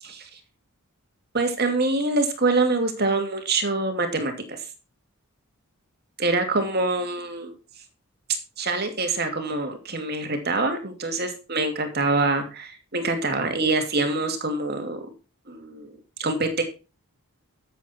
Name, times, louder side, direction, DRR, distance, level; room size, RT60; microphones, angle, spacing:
voice 1, 1.3-4.6 6.2-7.5 8.6-15.0 15.5-15.9 16.2-16.6, right 2 dB, 45° right, 5 dB, 2.7 m, -25 dB
13.5 x 7.7 x 4.6 m, 0.32 s
head